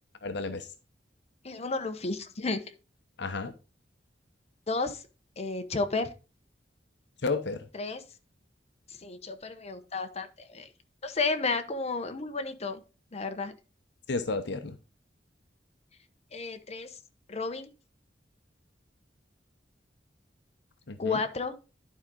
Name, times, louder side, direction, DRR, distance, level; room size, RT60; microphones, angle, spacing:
voice 1, 0.2-0.7 3.2-3.5 7.2-7.7 14.1-14.8 20.9-21.2, left 3 dB, 70° left, 0.8 m, -32 dB
voice 2, 1.4-2.6 4.7-5.0 5.4-6.1 7.8-8.0 9.0-10.7 11.0-12.8 13.1-13.5 16.3-16.9 17.3-17.7 21.0-21.5, left 3 dB, 35° left, 1.0 m, -32 dB
11.5 x 4.9 x 3.8 m
head